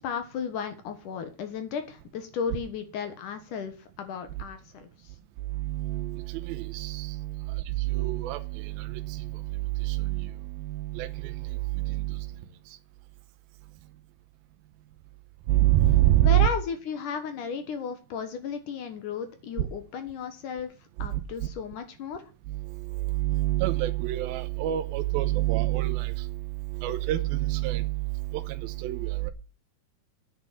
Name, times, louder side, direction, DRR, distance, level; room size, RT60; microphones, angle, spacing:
voice 1, 0.0-4.9 16.2-20.7 21.0-22.2, left 6 dB, 60° left, 2.5 m, -34 dB
voice 2, 5.6-7.5 7.8-9.4 9.8-11.4 11.8-12.2 15.5-16.5 23.1-26.3 26.8-28.0 28.3-29.3, right 16 dB, 80° right, 2.5 m, -26 dB
9.1 x 7.5 x 7.5 m
omnidirectional pair, 4.6 m